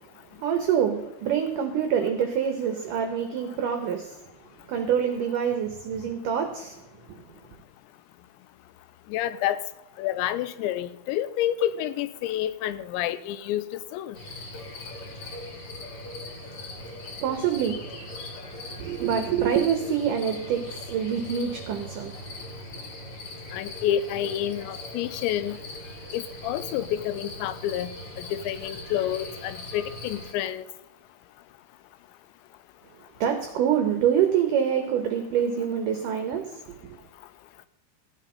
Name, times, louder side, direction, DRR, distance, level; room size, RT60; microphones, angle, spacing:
voice 1, 0.4-4.2 4.7-6.8 7.1-7.2 16.8-16.9 17.2-17.9 18.8-22.1 33.2-37.0, right 8 dB, 75° right, 6 dB, 2.0 m, -26 dB
voice 2, 9.1-9.6 10.0-14.2 23.5-25.6 26.1-27.9 28.2-30.6, left 11 dB, 90° left, 14 dB, 3.0 m, -29 dB
sound 1, 14.1-30.3, left 2 dB, 40° left, 2.5 m, -40 dB
14.5 x 8.2 x 5.5 m, 0.98 s
omnidirectional pair, 5.1 m